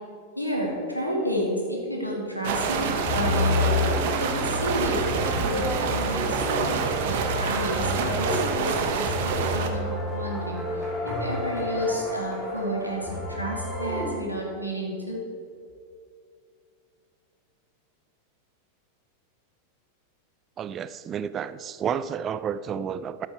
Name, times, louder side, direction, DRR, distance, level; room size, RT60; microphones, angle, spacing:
voice 1, 0.4-3.9 4.2-15.2, equal, 90° left, -2 dB, 2.2 m, -31 dB
sound 1, 2.4-9.7, right 6 dB, 50° right, 1.1 m, -27 dB
sound 2, 2.5-14.2, left 2 dB, 10° left, 3.0 m, -30 dB
voice 2, 20.6-23.3, right 8 dB, 25° right, 14 dB, 0.4 m, -31 dB
13.0 x 7.9 x 4.7 m, 2.4 s
figure-of-eight pair, 90°, 0 cm